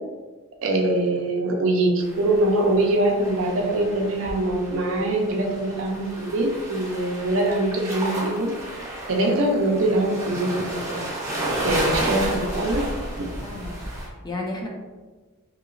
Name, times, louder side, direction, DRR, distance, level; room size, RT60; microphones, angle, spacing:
voice 1, 0.6-8.5 9.1-11.0 11.6-12.8 13.2-13.3, right 1 dB, 65° right, 1 dB, 0.5 m, -23 dB
sound 1, 2.0-14.1, right 1 dB, 15° right, 0.7 m, -32 dB
voice 2, 13.4-14.7, left 2 dB, 20° left, -1 dB, 0.4 m, -33 dB
2.9 x 2.8 x 2.5 m, 1.3 s
head